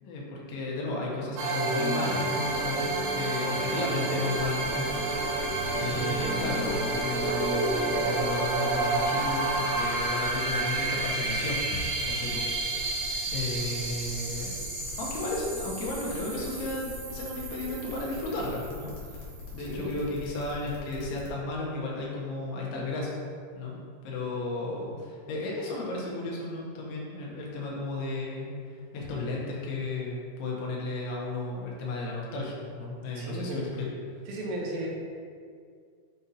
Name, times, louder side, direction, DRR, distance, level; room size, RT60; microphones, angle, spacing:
voice 1, 0.0-2.9 3.1-5.2 5.7-12.8 13.3-14.6 15.0-19.2 19.5-23.2 23.5-23.8 24.0-33.9, left 2 dB, 90° left, -3 dB, 3.5 m, -34 dB
sound 1, 1.4-19.8, right 2 dB, 70° right, 2.6 m, -30 dB
sound 2, 4.3-21.3, left 3 dB, 70° left, 2.3 m, -43 dB
voice 2, 33.2-33.7 34.3-34.9, right 1 dB, 85° right, -3 dB, 3.5 m, -34 dB
9.2 x 3.9 x 2.8 m, 2.2 s
omnidirectional pair, 5.4 m